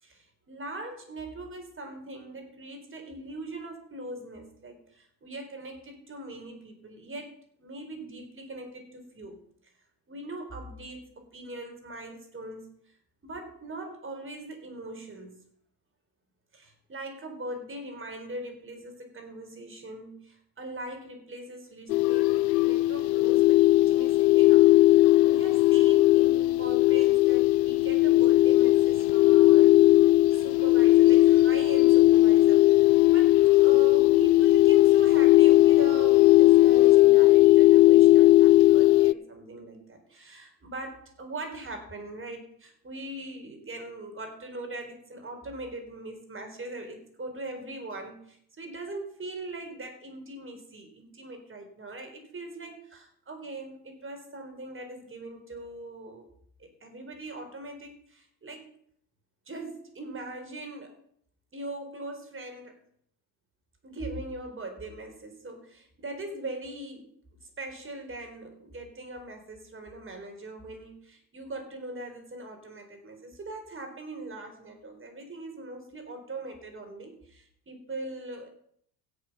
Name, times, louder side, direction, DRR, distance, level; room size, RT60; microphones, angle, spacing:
voice 1, 0.0-7.3 7.6-9.4 10.1-12.7 13.2-15.4 16.5-24.7 25.2-30.0 30.3-56.3 56.6-58.6 59.5-61.0 61.5-62.8 63.8-67.0 67.4-78.5, right 2 dB, 25° right, 4 dB, 4.1 m, -41 dB
sound 1, 21.9-39.1, left 17 dB, 75° left, 0.6 m, -18 dB
16.0 x 6.7 x 5.7 m, 0.66 s
hypercardioid pair, 65°, 50 cm